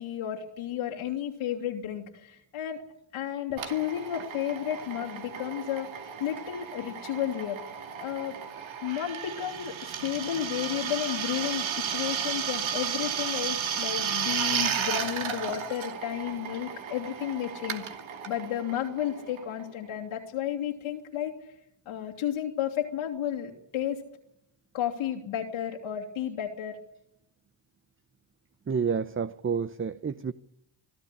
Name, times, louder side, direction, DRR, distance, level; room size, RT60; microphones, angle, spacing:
voice 1, 0.0-2.8 3.1-7.6 8.0-8.4 8.8-9.8 10.0-17.9 18.3-21.3 21.9-24.0 24.7-26.8, left 10 dB, 90° left, 2.8 m, -32 dB
Drill, 3.6-19.9, right 8 dB, 70° right, 2.6 m, -34 dB
voice 2, 28.7-30.3, right 6 dB, 25° right, 0.8 m, -29 dB
24.5 x 13.5 x 9.8 m
cardioid pair, 75°, 48 cm